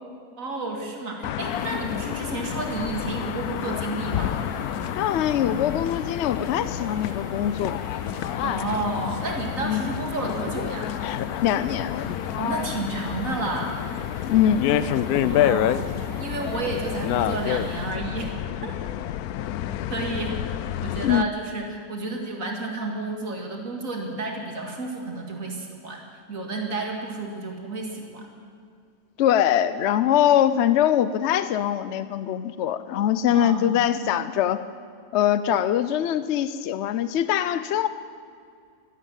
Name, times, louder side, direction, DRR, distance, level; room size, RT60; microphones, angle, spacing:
voice 1, 0.4-4.4 8.4-10.9 12.4-13.8 15.2-18.3 18.6-18.8 19.9-26.0 26.3-28.3 33.3-33.8, right 3 dB, 65° right, 1 dB, 2.4 m, -31 dB
sound 1, 1.2-21.2, left 11 dB, 85° left, 1.1 m, -29 dB
sound 2, 1.4-17.9, left 1 dB, 40° left, 5.2 m, -42 dB
voice 2, 5.0-7.8 9.6-9.9 11.4-11.9 14.2-14.8 21.0-21.3 29.2-34.6 35.1-37.9, left 10 dB, 65° left, 13 dB, 0.7 m, -22 dB
12.5 x 12.5 x 9.0 m, 2.3 s
omnidirectional pair, 1.5 m